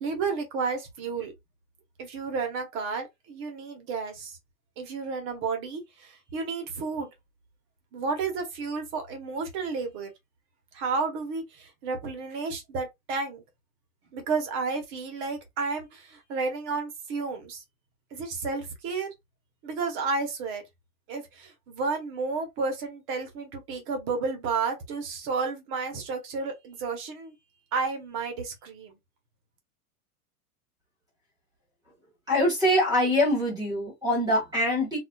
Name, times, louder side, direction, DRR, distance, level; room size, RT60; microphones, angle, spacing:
voice 1, 0.0-1.3 2.0-4.3 4.8-7.1 7.9-10.1 10.7-13.4 14.1-17.6 18.1-19.1 19.6-20.6 21.1-27.3 27.7-28.9, right 4 dB, 25° right, 0.9 m, -32 dB
voice 2, 32.3-35.0, left 1 dB, 10° right, 1.3 m, -24 dB
4.1 x 2.4 x 2.3 m
supercardioid pair, 165°, 45 cm